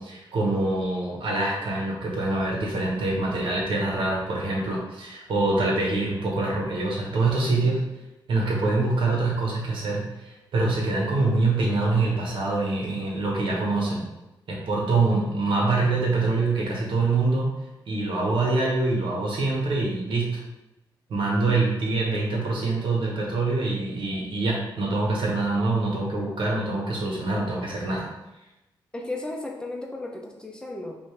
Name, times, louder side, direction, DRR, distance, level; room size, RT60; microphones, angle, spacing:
voice 1, 0.0-7.8 8.3-14.0 14.5-17.5 17.9-20.3 21.1-28.1, right 3 dB, 75° right, -2 dB, 1.3 m, -25 dB
voice 2, 28.9-31.0, left 2 dB, 10° left, 0 dB, 0.7 m, -34 dB
5.3 x 2.7 x 3.3 m, 0.97 s
wide cardioid pair, 140°, 9 cm